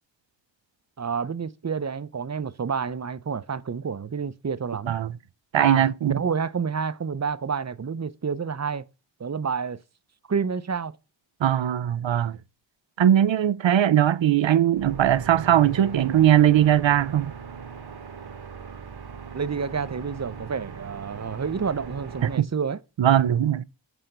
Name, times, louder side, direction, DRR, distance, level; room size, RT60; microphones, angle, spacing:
voice 1, 1.0-4.9 5.6-8.8 9.2-9.8 10.3-10.9 19.3-22.8, right 6 dB, 40° right, 0.6 m, -29 dB
voice 2, 5.5-6.2 11.4-12.4 13.0-17.3 22.2-22.5 23.0-23.6, right 11 dB, 80° right, 0.6 m, -20 dB
sound 1, 14.7-22.4, right 5 dB, 60° right, 1.1 m, -39 dB
8.0 x 4.3 x 6.6 m
wide cardioid pair, 70°, 44 cm